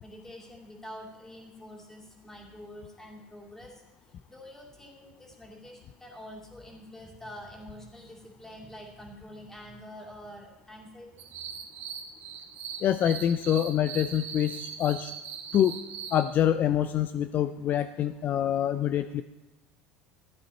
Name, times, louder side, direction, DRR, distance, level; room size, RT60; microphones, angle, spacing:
voice 1, 0.0-3.8 4.3-11.1, equal, 10° left, -1 dB, 2.6 m, -46 dB
sound 1, 11.2-16.3, right 7 dB, 60° right, 1.4 m, -40 dB
voice 2, 12.8-15.1 15.5-15.8 16.1-19.2, left 10 dB, 45° left, 11 dB, 0.4 m, -26 dB
14.0 x 9.0 x 4.2 m, 1.0 s
supercardioid pair, 105°, 4 cm